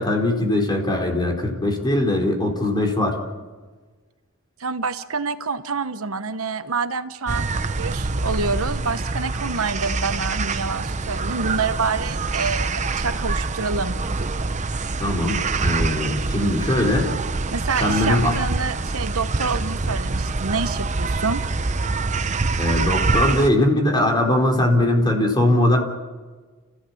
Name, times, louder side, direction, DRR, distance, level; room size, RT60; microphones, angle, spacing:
voice 1, 0.0-3.2 15.0-17.1 17.8-18.3 22.6-25.8, left 1 dB, 20° left, 2 dB, 4.0 m, -20 dB
voice 2, 4.6-13.9 17.5-21.4, right 4 dB, 70° right, 10 dB, 1.0 m, -27 dB
sound 1, 7.3-23.5, right 3 dB, 35° right, 0.8 m, -25 dB
29.5 x 16.0 x 8.6 m, 1.4 s
head